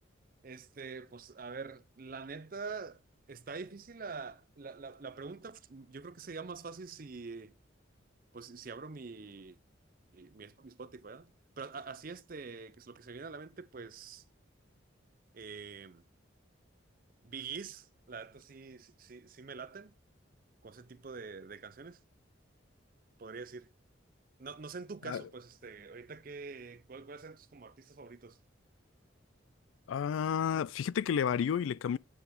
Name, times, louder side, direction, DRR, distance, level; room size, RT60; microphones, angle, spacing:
voice 1, 0.4-3.0 3.3-7.5 8.3-9.6 10.1-11.3 11.6-14.2 15.3-16.0 17.2-19.9 20.6-22.0 23.2-23.7 24.4-28.4, right 4 dB, 45° right, 0.6 m, -45 dB
voice 2, 29.9-32.0, left 8 dB, 85° left, 0.3 m, -31 dB
8.0 x 6.9 x 3.6 m
head